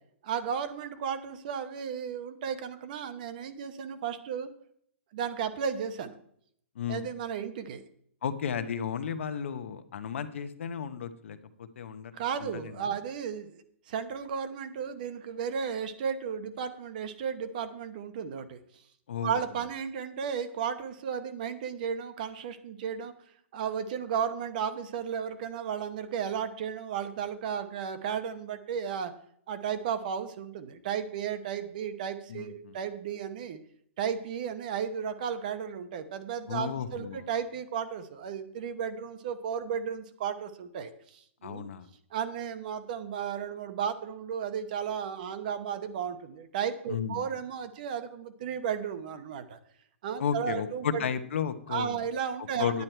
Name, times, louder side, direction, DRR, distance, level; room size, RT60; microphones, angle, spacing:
voice 1, 0.2-4.5 5.1-6.2 6.9-7.8 12.1-13.6 13.9-18.6 19.2-23.1 23.5-29.1 29.5-33.6 34.0-41.7 42.1-49.6 50.0-51.0 51.7-52.8, right 7 dB, 40° right, 11 dB, 0.9 m, -34 dB
voice 2, 6.8-7.1 8.2-12.9 19.1-19.4 32.3-32.8 36.5-37.3 41.4-41.9 46.9-47.2 50.2-52.0 52.6-52.8, left 7 dB, 65° left, 10 dB, 0.9 m, -34 dB
9.6 x 9.4 x 4.5 m, 0.66 s
hypercardioid pair, 175°, 7 cm